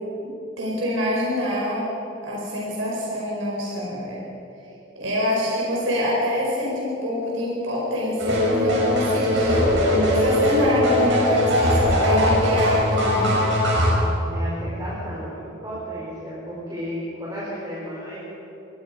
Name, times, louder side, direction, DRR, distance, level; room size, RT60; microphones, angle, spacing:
voice 1, 0.6-1.9 2.2-4.2 4.9-13.4, left 1 dB, 85° right, -4 dB, 4.9 m, -25 dB
sound 1, 8.2-13.9, left 1 dB, 65° right, 6.2 m, -20 dB
voice 2, 14.2-18.3, equal, 20° right, -8 dB, 4.9 m, -33 dB
26.0 x 19.5 x 5.2 m, 3.0 s
head